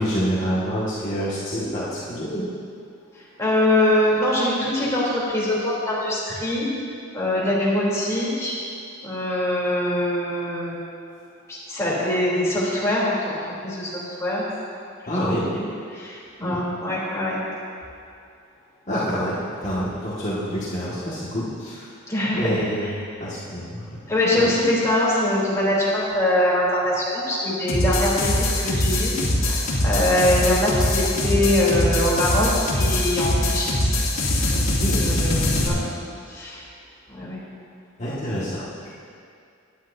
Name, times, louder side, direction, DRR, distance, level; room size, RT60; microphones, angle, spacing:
voice 1, 0.0-2.5 15.1-15.5 16.4-16.6 18.9-21.9 22.3-22.9 23.2-24.0 24.2-24.5 34.8-35.0 38.0-38.9, equal, 35° left, -10 dB, 1.8 m, -27 dB
voice 2, 3.4-6.7 7.1-8.5 9.0-10.8 11.5-14.5 15.1-15.7 15.9-17.4 22.1-22.9 24.1-33.9 34.4-35.8 36.3-36.6 37.1-37.4, left 1 dB, 15° left, -7 dB, 3.2 m, -23 dB
sound 1, 27.7-35.7, left 1 dB, 75° left, 2.3 m, -22 dB
18.5 x 10.5 x 2.7 m, 2.4 s
head